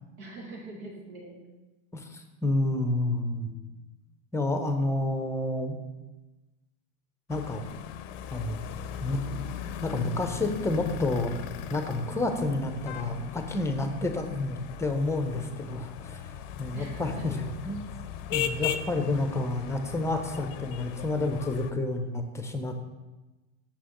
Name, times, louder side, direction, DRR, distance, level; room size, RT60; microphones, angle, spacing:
voice 1, 0.2-1.4 3.0-3.9 8.6-8.8 16.7-17.4, right 2 dB, 90° right, -1 dB, 1.6 m, -45 dB
voice 2, 1.9-3.5 4.3-5.8 7.3-7.6 8.3-8.6 9.0-9.5 9.8-16.2 16.6-17.8 18.3-22.9, left 2 dB, 5° left, 6 dB, 0.5 m, -30 dB
sound 1, 7.3-21.7, left 10 dB, 60° left, 0.5 m, -37 dB
6.2 x 5.9 x 3.0 m, 1.1 s
supercardioid pair, 100°, 42 cm